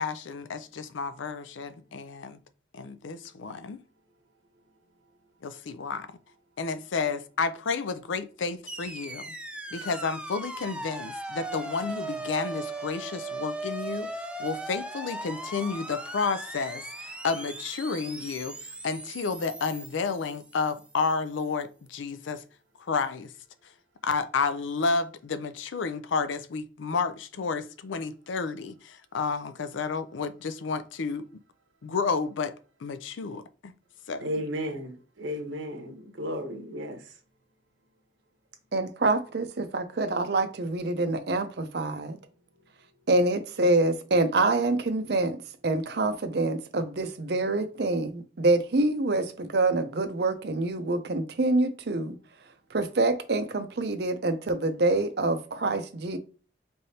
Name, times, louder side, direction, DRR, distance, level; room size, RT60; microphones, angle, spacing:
voice 1, 0.0-2.4 2.7-3.8 5.4-6.1 6.6-9.3 9.7-14.1 14.4-18.6 18.8-22.4 22.9-23.3 24.0-31.3 31.8-32.5 32.8-33.7 34.1-34.3, left 4 dB, 80° left, 0.5 m, -31 dB
sound 1, 8.7-20.9, right 2 dB, 5° right, 0.3 m, -38 dB
voice 2, 34.2-37.1, equal, 85° right, 1.1 m, -34 dB
voice 3, 38.7-42.2 43.1-45.4 45.6-52.2 52.7-56.2, right 2 dB, 55° right, 0.6 m, -26 dB
5.3 x 3.3 x 2.8 m
head